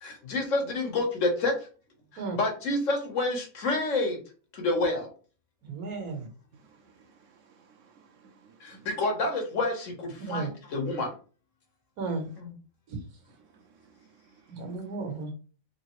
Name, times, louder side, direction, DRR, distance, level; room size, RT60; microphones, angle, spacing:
voice 1, 0.0-1.5 2.4-4.2 4.5-5.1 8.6-11.1 12.4-12.5, left 2 dB, 60° left, 1.5 m, -28 dB
voice 2, 5.6-6.3 10.3-10.5 12.0-12.3 12.9-13.0 14.5-15.3, right 4 dB, 85° right, 1.6 m, -34 dB
voice 3, 6.8-8.9 13.5-13.6 14.0-14.1 14.5-14.6, right 6 dB, 65° right, 0.9 m, -59 dB
3.7 x 3.3 x 3.0 m
omnidirectional pair, 1.5 m